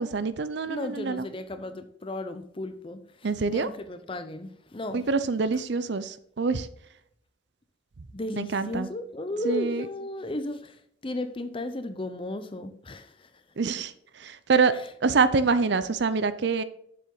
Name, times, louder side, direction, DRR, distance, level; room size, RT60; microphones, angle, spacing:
voice 1, 0.0-1.2 3.2-3.7 4.9-6.7 8.4-8.9 9.4-9.9 13.6-13.9 14.2-14.7 15.0-16.6, right 4 dB, 60° right, 14 dB, 0.5 m, -25 dB
voice 2, 0.6-5.0 5.5-5.6 8.1-13.4 14.7-14.9, left 1 dB, 25° left, 10 dB, 0.7 m, -35 dB
7.6 x 7.0 x 3.9 m, 0.71 s
head